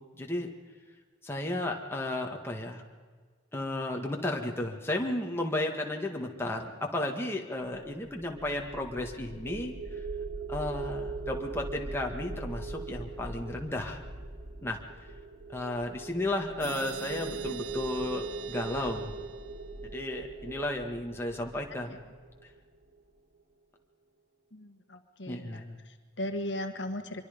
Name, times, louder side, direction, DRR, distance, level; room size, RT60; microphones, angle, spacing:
voice 1, 0.1-0.5 1.2-2.8 3.5-9.7 10.5-14.0 14.6-14.8 15.5-19.1 19.9-22.0 25.3-25.8, left 1 dB, 10° left, 1 dB, 1.9 m, -33 dB
sound 1, 7.7-22.7, right 3 dB, 50° right, 1.9 m, -40 dB
sound 2, 16.6-20.2, right 6 dB, 80° right, 1.0 m, -44 dB
voice 2, 24.5-27.3, left 1 dB, 65° left, 6 dB, 1.5 m, -37 dB
25.0 x 23.5 x 5.3 m, 1.5 s
head